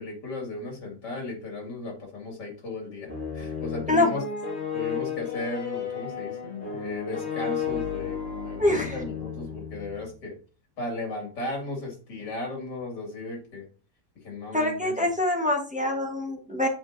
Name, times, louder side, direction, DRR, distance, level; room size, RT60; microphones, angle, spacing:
voice 1, 0.0-4.2 4.7-10.4 10.8-13.7 14.2-15.1, left 2 dB, 85° left, 0 dB, 2.9 m, -36 dB
sound 1, 3.1-10.0, left 7 dB, 40° left, 2.0 m, -33 dB
voice 2, 8.6-9.0 14.5-16.7, left 2 dB, 5° right, 1 dB, 0.8 m, -24 dB
7.8 x 5.0 x 2.6 m, 0.36 s
omnidirectional pair, 1.8 m